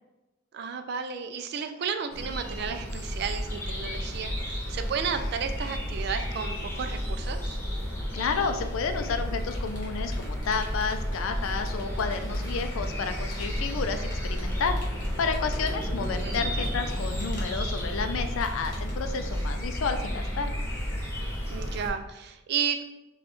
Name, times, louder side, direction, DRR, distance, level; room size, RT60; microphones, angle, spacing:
voice 1, 0.5-7.6 16.2-16.5 21.5-22.8, right 6 dB, 50° right, 7 dB, 0.3 m, -33 dB
sound 1, 2.1-21.9, equal, 10° left, 0.7 m, -32 dB
voice 2, 8.1-14.8 15.2-20.5, left 5 dB, 70° left, 7 dB, 0.4 m, -31 dB
Computer keyboard, 9.4-12.7 13.3-19.1, left 1 dB, 40° left, 1.1 m, -49 dB
5.0 x 2.3 x 3.0 m, 0.99 s
head